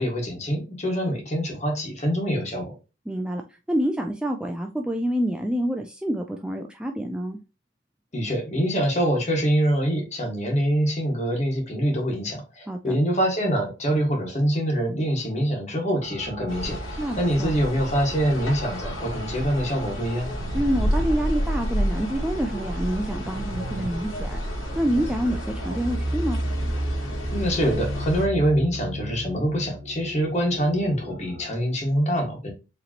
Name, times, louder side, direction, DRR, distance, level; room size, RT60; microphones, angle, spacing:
voice 1, 0.0-2.8 8.1-20.3 27.3-32.5, equal, 35° left, 1 dB, 1.5 m, -25 dB
voice 2, 3.1-3.4 3.7-7.4 12.7-13.0 17.0-17.5 20.5-24.4 24.7-26.4, equal, 5° right, 3 dB, 0.3 m, -27 dB
sound 1, 16.0-31.5, equal, 35° right, 0.8 m, -35 dB
sound 2, 16.5-28.2, equal, 85° left, 2.0 m, -30 dB
sound 3, 20.2-21.8 23.3-24.7, right 2 dB, 60° right, 0.5 m, -38 dB
4.9 x 3.2 x 2.8 m, 0.30 s
head